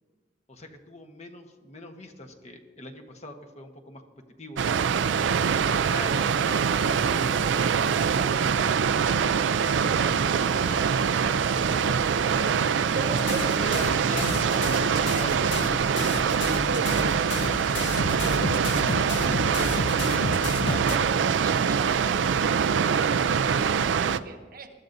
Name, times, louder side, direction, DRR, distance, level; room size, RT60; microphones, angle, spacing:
voice 1, 0.5-4.0 4.4-4.6 5.6-10.9 11.5-12.4 12.9-13.2 13.6-15.8 19.5-20.9, left 1 dB, 40° left, 4 dB, 1.1 m, -41 dB
Water, 4.6-24.2, right 6 dB, 90° right, 0.4 m, -24 dB
voice 2, 11.3-11.8 12.9-13.8 15.3-15.5 16.4-20.0 20.7-21.0 21.3-24.7, right 3 dB, 55° right, 7 dB, 1.0 m, -39 dB
sound 1, 13.2-21.0, left 3 dB, 70° left, 0.7 m, -32 dB
21.5 x 13.0 x 2.6 m, 1.4 s
head